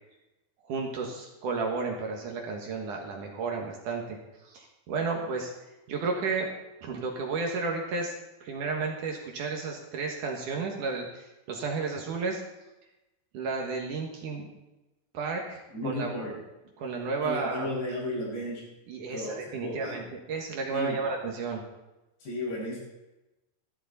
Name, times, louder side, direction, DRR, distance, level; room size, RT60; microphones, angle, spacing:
voice 1, 0.6-4.2 4.4-5.5 5.9-6.5 6.8-8.1 8.4-12.4 13.3-14.5 15.1-16.3 16.8-17.7 18.9-21.6, right 4 dB, 60° right, 1 dB, 2.5 m, -32 dB
voice 2, 15.7-16.3 17.2-18.6 19.1-20.0 20.7-21.0 22.2-22.8, left 1 dB, 85° left, -4 dB, 7.9 m, -34 dB
14.5 x 13.0 x 4.1 m, 1.0 s
omnidirectional pair, 4.8 m